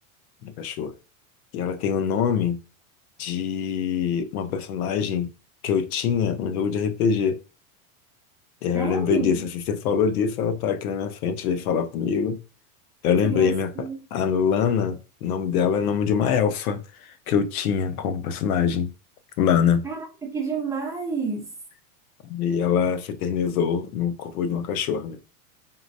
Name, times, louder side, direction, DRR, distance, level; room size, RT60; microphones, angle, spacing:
voice 1, 0.4-0.9 1.5-2.6 3.2-5.3 5.6-7.4 8.6-12.4 13.0-16.8 17.3-18.9 19.4-19.9 22.2-25.2, left 7 dB, 75° left, 0.8 m, -24 dB
voice 2, 8.7-9.4 13.0-13.9 19.8-21.5, right 4 dB, 5° right, 0.7 m, -29 dB
4.2 x 3.8 x 2.6 m
supercardioid pair, 145°, 44 cm